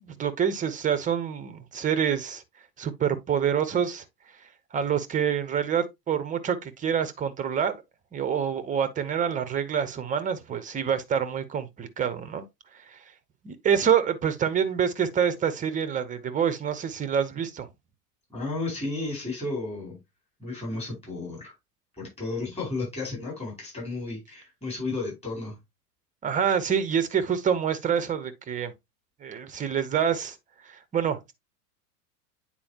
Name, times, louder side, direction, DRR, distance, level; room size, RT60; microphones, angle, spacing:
voice 1, 0.0-2.4 2.8-4.0 4.7-7.8 8.1-12.4 12.9-13.0 13.4-17.7 26.2-28.7 29.2-30.4 30.7-31.3, right 8 dB, 15° right, 0.8 m, -26 dB
voice 2, 18.3-20.0 20.4-21.5 22.0-25.6, left 3 dB, 15° left, 4.6 m, -33 dB
8.7 x 4.4 x 2.8 m
figure-of-eight pair, 90°, 47 cm